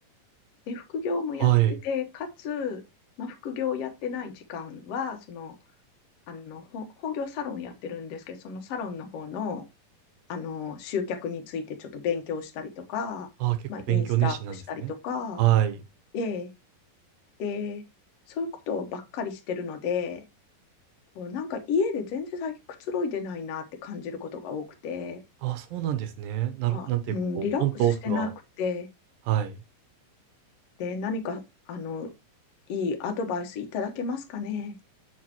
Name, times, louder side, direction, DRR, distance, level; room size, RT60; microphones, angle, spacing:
voice 1, 0.7-1.5 1.8-2.8 3.2-5.6 6.3-9.6 10.3-13.3 13.7-15.4 16.1-16.5 17.4-17.8 18.3-20.2 21.2-22.5 22.8-25.2 26.7-28.3 28.6-28.9 30.8-31.4 31.7-32.1 32.7-34.7, left 5 dB, 60° left, 1.9 m, -32 dB
voice 2, 1.4-1.8 13.4-13.6 13.9-14.9 15.4-15.8 25.4-27.0 27.4-28.3 29.3-29.5, right 13 dB, 80° right, 2.4 m, -25 dB
7.6 x 6.6 x 3.0 m
omnidirectional pair, 4.2 m